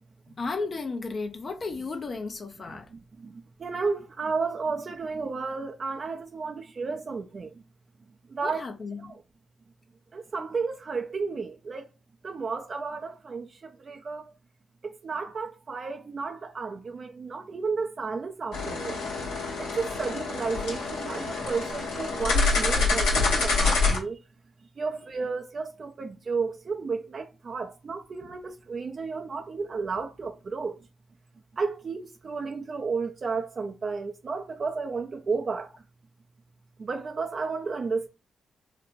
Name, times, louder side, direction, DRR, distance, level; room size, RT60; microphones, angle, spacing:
voice 1, 0.3-2.9 8.4-9.1, left 3 dB, 50° left, 0.6 m, -34 dB
voice 2, 2.9-7.5 8.3-8.6 9.0-9.2 10.1-11.9 12.2-14.3 14.8-19.0 19.6-24.2 24.8-30.8 31.5-35.7 36.8-38.1, right 4 dB, 50° right, 0.4 m, -32 dB
sound 1, 18.5-24.0, left 3 dB, 85° left, 1.0 m, -26 dB
4.0 x 2.1 x 2.6 m
hypercardioid pair, 45°, 0 cm